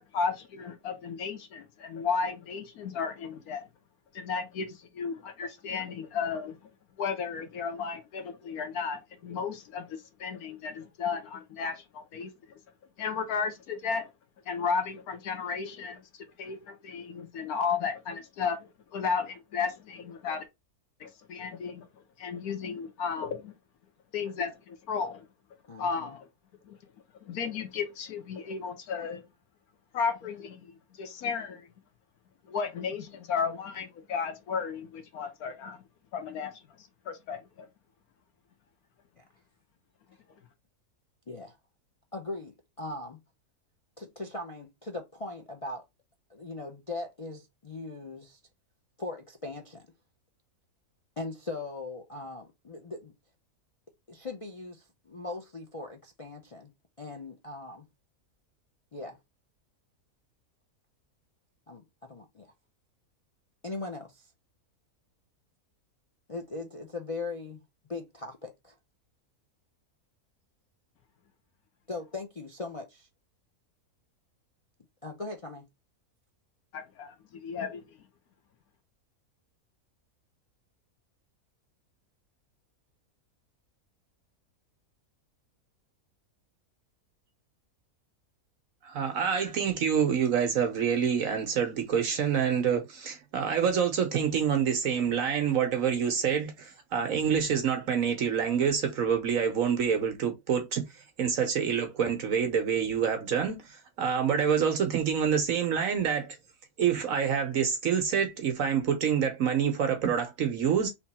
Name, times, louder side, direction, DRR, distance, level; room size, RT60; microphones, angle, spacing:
voice 1, 0.0-3.7 4.1-6.7 7.0-12.6 13.0-14.1 14.5-20.4 21.0-23.5 24.1-25.3 25.8-26.3 26.6-26.8 27.2-29.2 29.9-31.7 32.4-35.8 36.1-37.7 76.7-78.0, left 5 dB, 75° left, 1.3 m, -34 dB
voice 2, 25.7-26.2 39.2-39.3 41.3-41.6 42.1-43.2 44.0-45.8 46.3-48.4 49.0-49.8 51.2-53.1 54.1-56.7 57.0-57.9 58.9-59.2 61.7-62.5 63.6-64.3 66.3-67.6 67.9-68.8 71.9-73.1 75.0-75.7, left 3 dB, 55° left, 0.3 m, -39 dB
voice 3, 88.8-106.4 106.8-110.9, right 7 dB, 65° right, 1.2 m, -27 dB
3.5 x 2.9 x 4.1 m
omnidirectional pair, 1.6 m